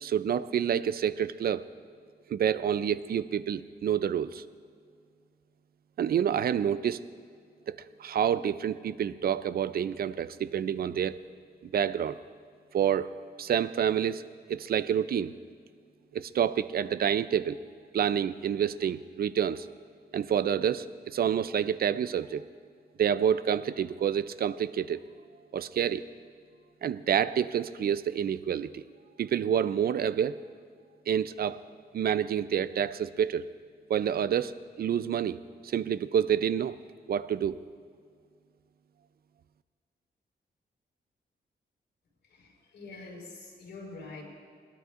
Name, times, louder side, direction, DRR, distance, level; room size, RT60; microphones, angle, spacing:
voice 1, 0.0-1.6 2.3-4.4 6.0-7.0 7.7-7.8 8.0-11.2 11.7-12.2 12.7-13.1 13.4-14.2 14.5-15.3 16.1-17.6 17.9-19.7 20.1-22.4 23.0-25.0 25.5-26.0 26.8-28.8 29.2-30.4 31.1-31.6 31.9-33.4 33.9-36.8 37.1-37.6, right 9 dB, 60° right, 15 dB, 0.4 m, -28 dB
voice 2, 42.3-44.2, left 3 dB, 85° left, -3 dB, 4.5 m, -45 dB
20.5 x 18.5 x 2.5 m, 2.1 s
wide cardioid pair, 125°, 18 cm